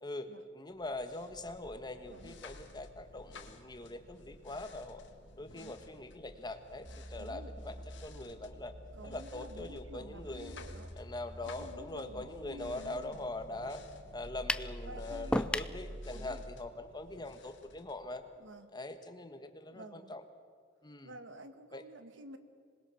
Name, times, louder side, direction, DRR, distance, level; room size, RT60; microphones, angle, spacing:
voice 1, 0.0-5.0 5.4-8.7 9.0-10.5 11.0-13.8 14.1-18.2 18.7-20.2 20.8-21.1 21.7-21.8, left 2 dB, 25° left, 8 dB, 1.4 m, -43 dB
sound 1, 0.7-18.6, left 2 dB, 70° left, 2.0 m, -55 dB
sound 2, 6.8-16.4, equal, 55° right, 7.4 m, -49 dB
voice 2, 7.1-7.5 8.9-10.9 11.5-13.7 14.8-15.4 16.1-16.4 18.4-18.7 19.7-20.2 21.0-22.4, right 1 dB, 75° right, 10 dB, 1.5 m, -51 dB
sound 3, 14.5-14.7 15.3-15.8, left 1 dB, 5° left, 0.5 m, -31 dB
26.5 x 20.5 x 6.4 m, 2.1 s
head